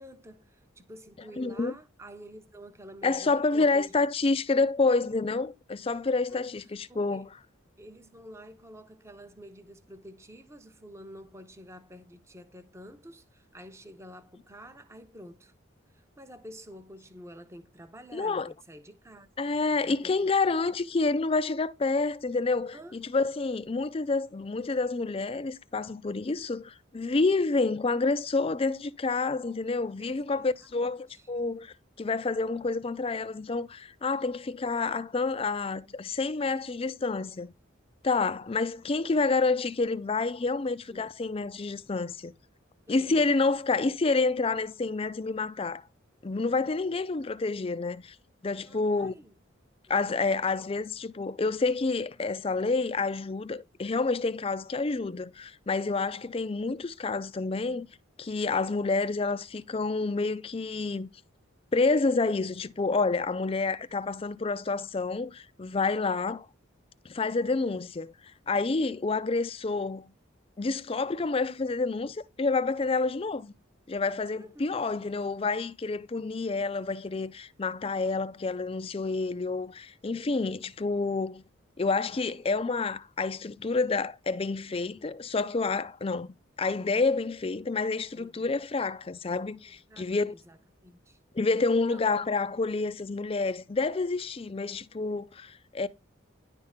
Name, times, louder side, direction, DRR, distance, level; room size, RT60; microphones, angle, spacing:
voice 1, 0.0-3.9 6.3-6.4 6.9-7.2 7.8-15.5 15.9-19.3 19.8-20.3 22.7-23.0 30.0-31.3 40.6-41.1 42.9-43.2 46.9-47.0 48.6-49.3 49.9-50.0 74.4-74.8 88.1-88.6 89.7-90.6 90.8-91.2 91.9-92.0 95.0-95.2, equal, 15° right, 0.8 m, -49 dB
voice 2, 1.4-1.7 3.0-7.3 18.1-18.5 19.4-37.5 38.0-42.3 42.9-45.8 46.2-48.2 48.4-49.1 49.9-57.9 58.2-61.1 61.7-66.5 67.0-70.1 70.6-73.5 73.9-81.4 81.8-90.3 91.3-95.9, left 3 dB, 30° left, 0.4 m, -28 dB
10.5 x 3.6 x 5.6 m
head